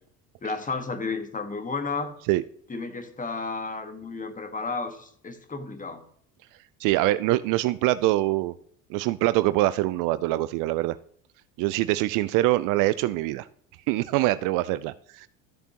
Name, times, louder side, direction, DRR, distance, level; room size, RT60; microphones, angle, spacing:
voice 1, 0.4-2.1 2.7-6.0, left 4 dB, 20° left, 9 dB, 1.4 m, -32 dB
voice 2, 6.8-8.5 8.9-11.0 11.6-13.5 13.9-15.3, right 17 dB, 55° right, 16 dB, 0.4 m, -24 dB
13.5 x 6.7 x 2.9 m, 0.62 s
hypercardioid pair, 75°, 39 cm